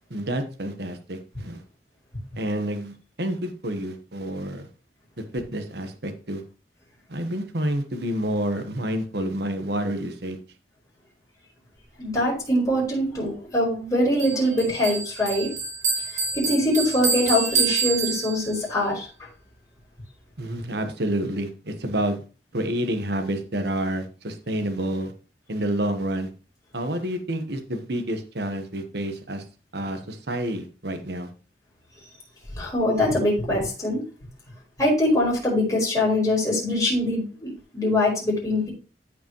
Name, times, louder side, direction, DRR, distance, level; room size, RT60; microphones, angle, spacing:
voice 1, 0.1-1.6 2.3-4.7 5.2-6.4 7.1-10.4 20.4-22.2 22.5-25.1 25.5-26.3 26.7-29.4 29.7-31.3, right 1 dB, 65° right, 7 dB, 1.2 m, -29 dB
voice 2, 12.0-15.5 16.1-19.1 32.5-34.0 34.8-38.7, left 1 dB, 20° left, -4 dB, 5.0 m, -23 dB
Bell, 14.2-18.7, right 4 dB, 40° right, 2.8 m, -27 dB
14.0 x 5.1 x 3.1 m, 0.35 s
head